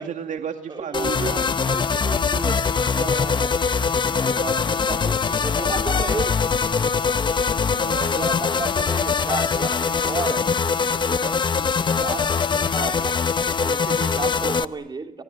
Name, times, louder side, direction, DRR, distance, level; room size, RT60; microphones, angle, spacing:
voice 1, 0.0-1.3 7.6-8.7, right 7 dB, 50° right, 6 dB, 2.3 m, -34 dB
voice 2, 0.7-2.6 2.9-3.6 4.2-6.5 8.1-10.5 10.9-11.7 12.0-13.2 13.6-15.2, right 4 dB, 25° right, 5 dB, 3.0 m, -33 dB
sound 1, 0.9-14.6, left 5 dB, 25° left, 1.0 m, -22 dB
30.0 x 25.0 x 7.8 m, 0.86 s
cardioid pair, 110°, 17 cm